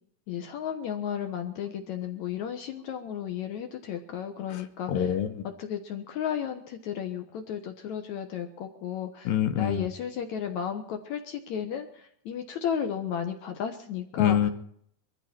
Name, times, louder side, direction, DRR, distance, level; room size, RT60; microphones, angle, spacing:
voice 1, 0.3-5.1 5.4-9.3 9.6-14.4, left 8 dB, 65° left, 6 dB, 2.3 m, -34 dB
voice 2, 4.5-5.5 9.3-9.9 14.2-14.5, left 10 dB, 85° left, 10 dB, 2.7 m, -26 dB
21.5 x 14.0 x 4.4 m, 0.65 s
omnidirectional pair, 4.0 m